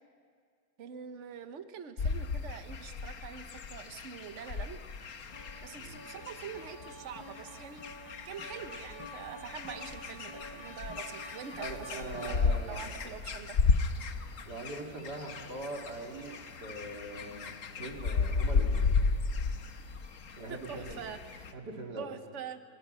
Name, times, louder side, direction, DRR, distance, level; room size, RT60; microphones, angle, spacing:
voice 1, 0.8-4.8 5.6-7.9 8.2-13.6 20.5-21.5 22.0-22.6, right 7 dB, 50° right, 9 dB, 1.3 m, -45 dB
sound 1, 2.0-21.5, left 4 dB, 55° left, 1.4 m, -34 dB
sound 2, 5.3-12.7, equal, 80° left, 5.4 m, -48 dB
voice 2, 11.6-12.9 14.5-18.8 20.4-21.0 21.5-22.2, right 2 dB, 80° right, 0 dB, 3.5 m, -42 dB
28.0 x 25.0 x 5.6 m, 2.1 s
omnidirectional pair, 1.8 m